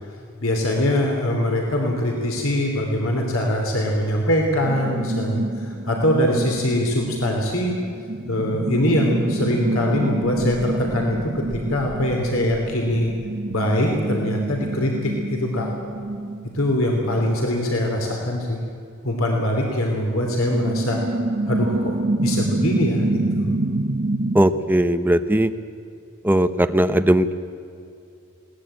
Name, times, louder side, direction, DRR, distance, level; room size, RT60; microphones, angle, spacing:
voice 1, 0.4-7.7 8.3-13.1 13.5-15.7 16.5-18.6 19.0-21.0 21.5-21.9 22.2-23.5, left 1 dB, 75° left, 1 dB, 3.3 m, -22 dB
sound 1, 4.7-17.5 18.1-18.2 20.0-24.4, right 2 dB, 50° right, 0.9 m, -27 dB
voice 2, 24.3-25.5 26.2-27.3, right 1 dB, 10° right, 10 dB, 0.8 m, -18 dB
21.0 x 18.5 x 8.9 m, 2.5 s
head